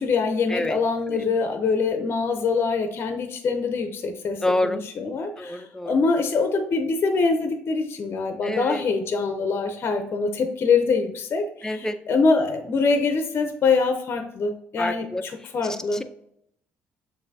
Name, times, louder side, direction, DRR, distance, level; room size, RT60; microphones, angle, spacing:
voice 1, 0.0-16.0, left 4 dB, 50° left, 7 dB, 0.6 m, -24 dB
voice 2, 4.4-4.8 5.4-5.9 8.4-8.8 11.6-12.0 14.8-15.2, left 1 dB, 10° left, 9 dB, 0.5 m, -27 dB
7.1 x 2.6 x 2.6 m, 0.73 s
supercardioid pair, 70°, 5 cm